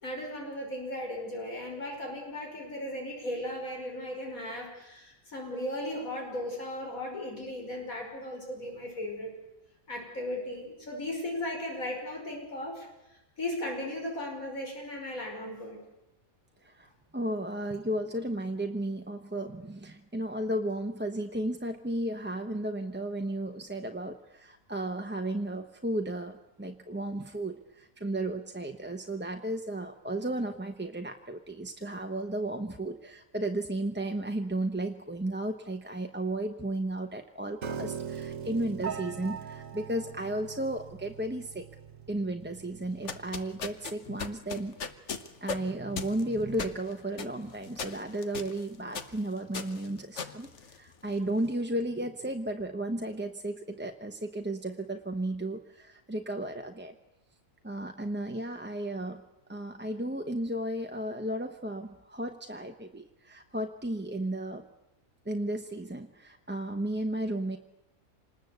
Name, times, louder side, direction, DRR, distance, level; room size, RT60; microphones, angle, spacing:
voice 1, 0.0-9.3 9.9-15.8, left 1 dB, 80° left, 1 dB, 5.9 m, -36 dB
voice 2, 16.6-41.7 42.1-44.8 45.4-56.9 57.6-59.2 59.5-64.7 65.2-67.6, right 1 dB, 10° right, 4 dB, 0.8 m, -34 dB
Piano, 37.6-43.8, right 7 dB, 70° right, 1.5 m, -41 dB
sound 1, 42.9-51.3, left 5 dB, 55° left, 1.5 m, -39 dB
26.5 x 20.0 x 8.1 m, 0.87 s
omnidirectional pair, 1.5 m